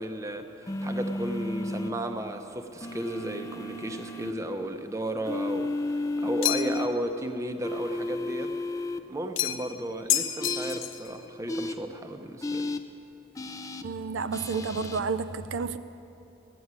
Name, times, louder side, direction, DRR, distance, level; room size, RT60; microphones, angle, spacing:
voice 1, 0.0-8.5 9.1-12.7, right 1 dB, 15° right, 0.7 m, -34 dB
sound 1, 0.7-1.9 2.8-4.3 5.3-6.9 7.6-9.0 10.4-10.8 11.5-11.7 12.4-12.8 13.4-13.8 14.3-15.0, left 2 dB, 15° left, 0.5 m, -32 dB
sound 2, 6.4-6.9 9.4-9.7 10.1-11.1, left 11 dB, 80° left, 0.6 m, -28 dB
voice 2, 13.8-15.8, right 5 dB, 75° right, 0.4 m, -31 dB
14.5 x 8.5 x 9.5 m
head